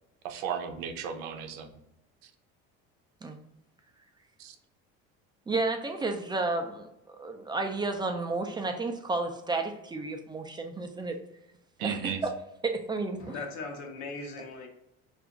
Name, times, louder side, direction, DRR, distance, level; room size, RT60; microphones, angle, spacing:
voice 1, 0.2-1.7 4.4-4.5 11.8-12.2, right 7 dB, 85° right, 0.6 m, -35 dB
voice 2, 5.5-6.9 7.2-11.2 11.8-12.3 12.6-13.3, right 3 dB, 15° right, 0.4 m, -31 dB
voice 3, 13.2-14.7, left 3 dB, 65° left, 0.9 m, -39 dB
2.8 x 2.5 x 3.5 m
supercardioid pair, 105°, 30 cm